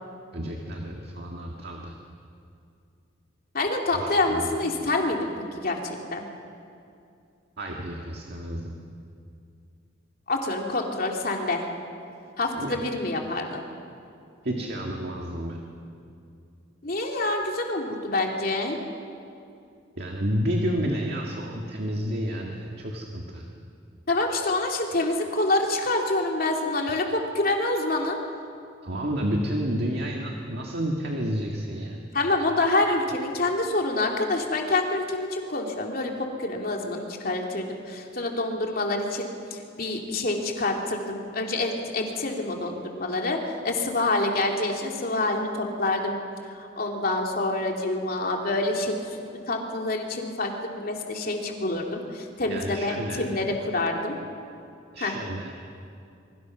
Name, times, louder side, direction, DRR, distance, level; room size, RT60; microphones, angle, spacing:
voice 1, 0.3-2.0 3.9-4.5 7.6-8.7 12.5-12.8 14.4-15.6 20.0-23.5 28.8-32.0 52.5-53.3 54.9-55.5, equal, 55° right, 0 dB, 1.9 m, -30 dB
voice 2, 3.5-6.2 10.3-11.6 12.4-13.6 16.8-18.8 24.1-28.2 32.1-36.1 36.4-46.1 46.5-49.2 49.5-54.2 55.0-55.1, left 2 dB, 50° left, 1 dB, 2.9 m, -27 dB
25.5 x 23.0 x 6.1 m, 2.5 s
head